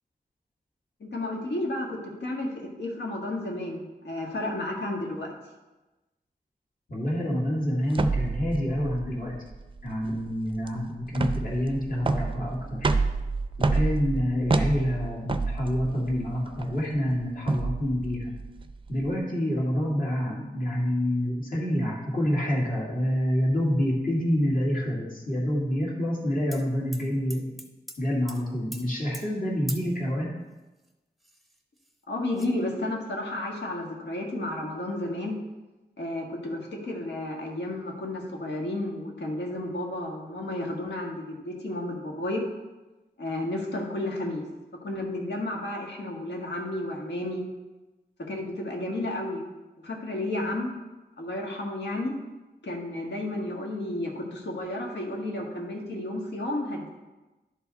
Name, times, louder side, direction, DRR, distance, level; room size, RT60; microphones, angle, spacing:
voice 1, 1.0-5.3 32.1-35.4 36.0-42.4 43.2-44.4 44.8-47.4 48.3-49.4 49.8-50.7 51.2-52.2 52.6-56.9, left 1 dB, 85° left, -1 dB, 1.6 m, -32 dB
voice 2, 6.9-9.4 9.8-12.9 13.6-18.3 18.9-27.5 28.0-30.4, equal, 55° left, -4 dB, 2.3 m, -27 dB
sound 1, 7.9-19.1, right 3 dB, 30° right, 0.4 m, -29 dB
sound 2, 26.5-26.6 26.9-28.0 28.3-28.4 28.7-28.8 29.1-29.3 29.7-29.9 30.8-30.9 31.2-31.9 32.3-32.5, equal, ahead, 0.8 m, -42 dB
11.0 x 4.8 x 4.1 m, 1.1 s
wide cardioid pair, 110°, 17 cm